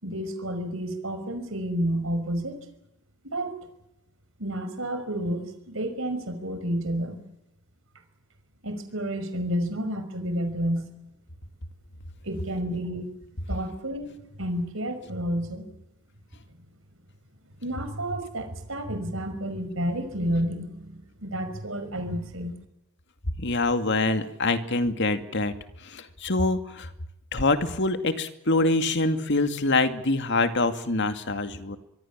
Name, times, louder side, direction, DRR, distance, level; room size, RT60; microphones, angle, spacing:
voice 1, 0.0-2.7 3.2-3.6 4.4-7.2 8.6-10.9 12.2-13.1 13.5-15.7 17.6-22.5, equal, 65° right, 9 dB, 5.6 m, -30 dB
voice 2, 23.4-25.5 25.8-26.9 27.3-31.8, left 2 dB, 55° left, 9 dB, 2.3 m, -25 dB
25.5 x 23.0 x 7.4 m, 0.85 s
head